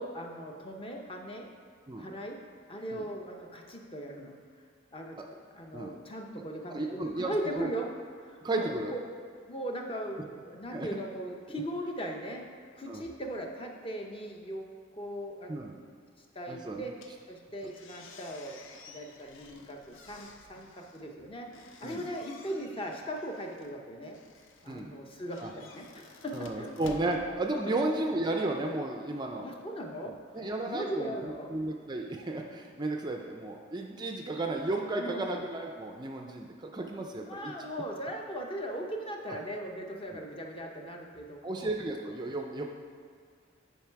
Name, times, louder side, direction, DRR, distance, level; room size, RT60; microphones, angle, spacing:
voice 1, 0.0-1.5 2.0-2.4 2.7-4.4 4.9-5.2 5.5-7.9 8.2-9.0 9.5-12.5 12.8-14.7 14.9-15.8 16.2-16.9 17.3-18.6 18.9-21.5 21.8-24.2 24.6-26.7 27.1-27.2 27.7-27.8 29.4-30.1 30.7-31.5 34.1-34.2 35.0-35.4 37.1-41.7, equal, 25° left, 1 dB, 0.7 m, -39 dB
voice 2, 6.7-7.3 7.6-7.7 8.4-8.9 10.7-10.9 11.5-11.6 12.9-13.0 15.5-15.8 16.5-16.9 21.8-22.1 24.7-24.9 25.4-25.5 26.3-29.5 30.0-37.5 40.1-40.2 41.4-42.6, right 2 dB, 20° right, 2 dB, 0.4 m, -34 dB
sound 1, 16.9-28.1, left 3 dB, 70° left, 0.7 m, -53 dB
9.2 x 4.6 x 4.6 m, 2.1 s
head